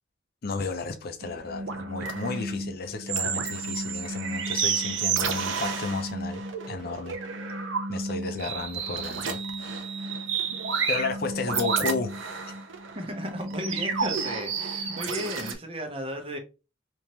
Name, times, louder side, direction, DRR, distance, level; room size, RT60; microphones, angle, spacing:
voice 1, 0.4-7.2 7.9-9.4 10.9-12.1, left 4 dB, 50° left, 0.6 m, -33 dB
sound 1, 1.2-15.5, right 5 dB, 85° right, 0.7 m, -31 dB
voice 2, 12.9-16.4, equal, 30° right, 0.8 m, -35 dB
3.5 x 3.0 x 2.9 m
head